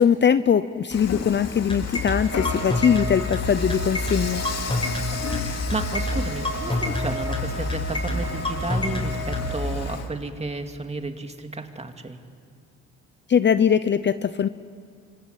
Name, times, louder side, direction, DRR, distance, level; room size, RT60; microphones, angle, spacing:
voice 1, 0.0-4.5 13.3-14.5, left 8 dB, 35° left, 13 dB, 0.7 m, -21 dB
Dishes pots and pans / Frying (food), 0.9-10.1, left 5 dB, 55° left, 2.7 m, -34 dB
sound 1, 1.7-9.5, left 2 dB, 15° left, 7.3 m, -26 dB
Trumpet, 2.3-9.6, right 2 dB, 70° right, 4.9 m, -36 dB
voice 2, 5.2-12.2, right 3 dB, 20° right, 6 dB, 2.3 m, -32 dB
26.0 x 24.5 x 9.0 m, 2.2 s
cardioid pair, 90°, 31 cm